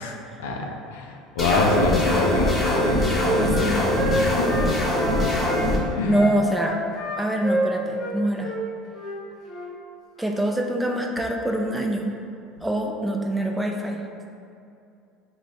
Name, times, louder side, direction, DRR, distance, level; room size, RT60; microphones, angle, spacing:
voice 1, 0.0-4.5 6.0-6.3, left 3 dB, 80° left, 2 dB, 0.4 m, -27 dB
sound 1, 1.4-5.8, left 1 dB, 20° left, 1.0 m, -22 dB
Wind instrument woodwind instrument, 2.2-5.6 6.1-8.1 8.4-8.6 8.9-9.2 9.4-9.7, equal, 60° left, 0.8 m, -29 dB
voice 2, 3.4-3.9 6.1-6.8 7.2-8.5 10.2-12.1 12.6-14.0, right 1 dB, 5° right, 1 dB, 0.4 m, -24 dB
3.3 x 2.0 x 4.0 m, 2.5 s
hypercardioid pair, 80°, 0 cm